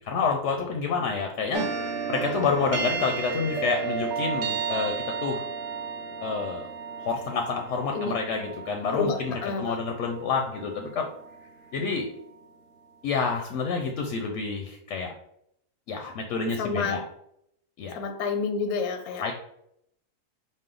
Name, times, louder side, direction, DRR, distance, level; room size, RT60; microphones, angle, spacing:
voice 1, 0.0-5.4 6.2-6.7 7.0-11.1 11.7-12.1 13.0-15.1 15.9-17.0 17.8-17.9 19.2-19.3, left 5 dB, 65° left, 3 dB, 0.8 m, -28 dB
sound 1, 1.5-12.2, right 5 dB, 65° right, 0.9 m, -33 dB
voice 2, 8.9-9.8 16.6-17.0 17.9-19.3, left 4 dB, 85° left, 8 dB, 1.1 m, -29 dB
5.3 x 2.0 x 3.7 m, 0.74 s
omnidirectional pair, 1.5 m